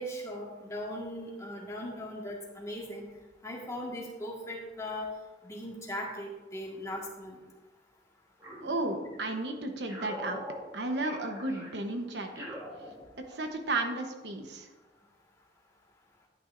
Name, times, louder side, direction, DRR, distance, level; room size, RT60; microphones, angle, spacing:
voice 1, 0.0-3.1 3.4-5.1 5.4-7.4, equal, 15° left, -2 dB, 1.7 m, -39 dB
sound 1, 8.4-9.4 9.9-13.5, equal, 15° right, 2.0 m, -44 dB
voice 2, 8.6-10.4 10.7-12.4 13.3-14.7, right 2 dB, 70° right, 5 dB, 1.0 m, -33 dB
11.0 x 9.4 x 2.6 m, 1.2 s
head